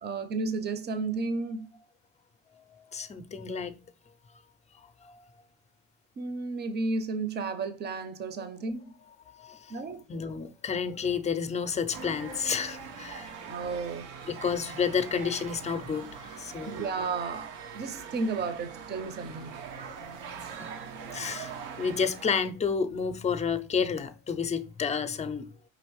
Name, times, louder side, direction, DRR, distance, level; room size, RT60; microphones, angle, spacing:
voice 1, 0.0-1.8 6.2-9.0 9.7-10.0 13.5-14.1 16.7-19.5, right 3 dB, 30° right, 0.6 m, -33 dB
voice 2, 2.5-3.8 4.8-5.2 9.3-13.4 14.3-16.8 19.8-20.7 21.1-25.4, left 6 dB, 20° left, 0.5 m, -31 dB
sound 1, 11.9-22.5, right 6 dB, 85° right, 0.7 m, -42 dB
5.1 x 2.9 x 3.1 m
supercardioid pair, 80°, 32 cm